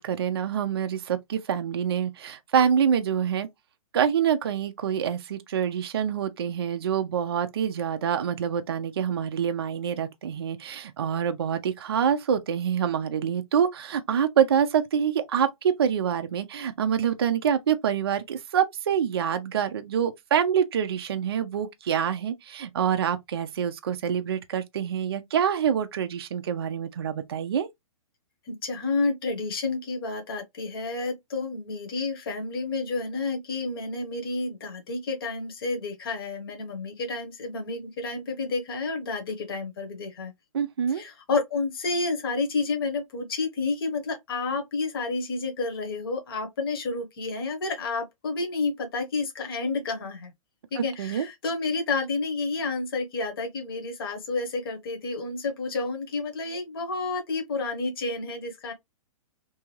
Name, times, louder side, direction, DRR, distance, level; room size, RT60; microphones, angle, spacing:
voice 1, 0.0-3.5 3.9-27.7 40.5-41.0 50.8-51.3, right 8 dB, 45° right, 0.4 m, -26 dB
voice 2, 28.5-40.3 40.9-50.3 50.7-58.7, left 3 dB, 40° left, 0.9 m, -30 dB
2.6 x 2.3 x 3.0 m
hypercardioid pair, 180°, 18 cm